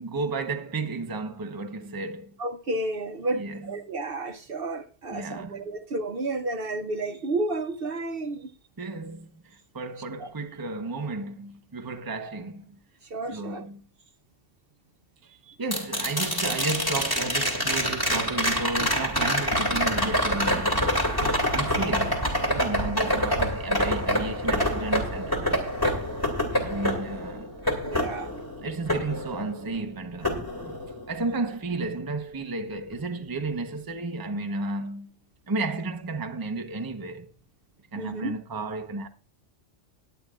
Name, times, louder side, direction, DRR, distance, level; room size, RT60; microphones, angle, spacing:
voice 1, 0.0-2.4 3.3-3.7 5.1-5.6 8.8-12.8 13.3-13.8 15.2-15.3 15.6-20.8 21.5-25.6 26.6-27.5 28.6-35.1 35.5-37.3 37.9-39.1, right 3 dB, 20° right, 0.8 m, -33 dB
voice 2, 2.4-8.5 10.2-10.3 13.0-13.6 15.4-15.6 27.8-28.3 38.0-38.3, right 2 dB, 55° right, 1.0 m, -31 dB
sound 1, 15.7-29.8 30.2-31.3 33.5-33.6, equal, 15° left, 2.7 m, -26 dB
20.0 x 9.1 x 2.4 m
omnidirectional pair, 1.3 m